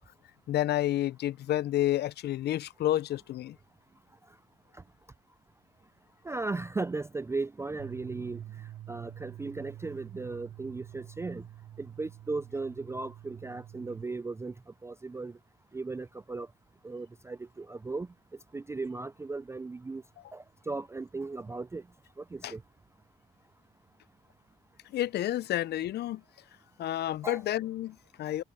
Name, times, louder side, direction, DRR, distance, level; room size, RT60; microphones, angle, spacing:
voice 1, 0.5-3.6 22.4-22.5 24.9-26.2 26.8-28.4, left 13 dB, 55° left, 0.4 m, -30 dB
voice 2, 6.2-8.4 8.9-11.4 11.8-14.5 14.8-15.4 15.7-16.5 16.8-18.1 18.5-20.0 20.3-21.8 22.2-22.6 27.2-27.4, right 3 dB, 15° right, 0.3 m, -36 dB
sound 1, 7.8-14.1, right 13 dB, 85° right, 5.4 m, -47 dB
cardioid pair, 90°, 20 cm